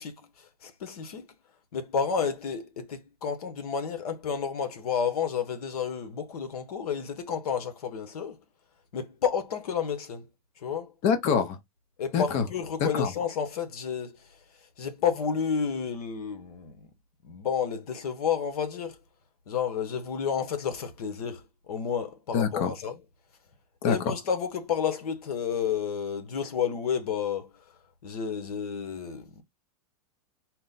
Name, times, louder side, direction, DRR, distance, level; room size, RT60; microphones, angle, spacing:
voice 1, 0.0-1.3 1.7-8.4 8.9-10.3 10.6-10.9 12.0-16.9 17.2-19.0 19.5-23.0 23.8-27.6 28.0-29.4, left 7 dB, 80° left, 1.0 m, -31 dB
voice 2, 11.0-11.6 12.1-12.4 12.8-13.1 22.3-22.7 23.8-24.0, left 6 dB, 35° left, 0.8 m, -25 dB
4.3 x 2.1 x 3.9 m
hypercardioid pair, 135°, 19 cm